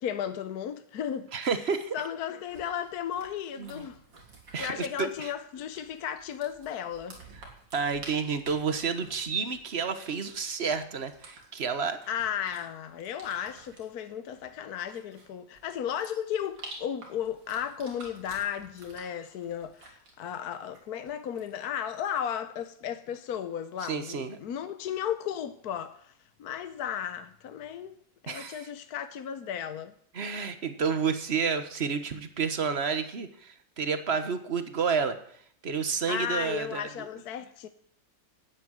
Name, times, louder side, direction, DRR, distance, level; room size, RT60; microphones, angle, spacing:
voice 1, 0.0-1.3 1.9-4.0 4.6-7.2 12.1-26.1 26.4-27.9 28.2-29.9 36.1-37.7, left 9 dB, 65° left, 1.3 m, -34 dB
voice 2, 1.3-1.9 3.6-3.8 4.5-5.3 7.3-7.4 7.7-12.0 23.8-24.4 28.3-28.7 30.1-35.2 35.6-37.1, right 6 dB, 40° right, 1.4 m, -30 dB
sound 1, 2.5-21.7, right 2 dB, 90° right, 4.0 m, -51 dB
12.5 x 9.3 x 9.1 m
omnidirectional pair, 1.9 m